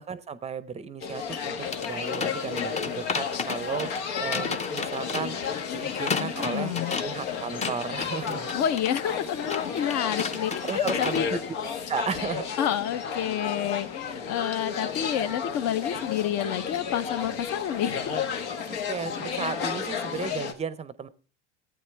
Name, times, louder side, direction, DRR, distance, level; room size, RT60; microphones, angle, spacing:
voice 1, 0.0-3.9 4.2-5.4 5.7-6.7 7.0-8.5 10.3-11.4 11.9-12.4 18.7-21.1, right 6 dB, 20° right, 0.6 m, -34 dB
sound 1, 1.0-20.5, left 6 dB, 80° left, 1.6 m, -33 dB
sound 2, 1.6-11.3, left 5 dB, 20° left, 0.7 m, -35 dB
voice 2, 6.1-7.0 8.5-11.3 12.6-18.1, left 10 dB, 50° left, 1.0 m, -29 dB
15.0 x 8.7 x 3.4 m
supercardioid pair, 120°, 33 cm